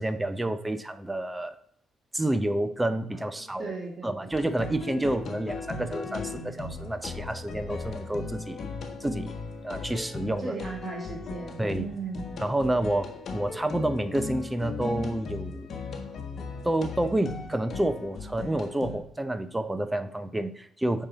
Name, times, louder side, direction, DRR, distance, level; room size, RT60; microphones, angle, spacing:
voice 1, 0.0-1.5 2.1-3.7 4.0-8.7 9.0-9.3 9.6-10.6 11.6-11.9 12.4-15.7 16.6-21.1, right 1 dB, 10° right, 10 dB, 0.6 m, -29 dB
voice 2, 3.6-4.3 10.4-12.4, right 4 dB, 35° right, 0 dB, 1.8 m, -37 dB
sound 1, 4.3-19.0, left 4 dB, 55° left, 1.2 m, -37 dB
6.9 x 5.5 x 4.0 m, 0.64 s
cardioid pair, 90°, 0 cm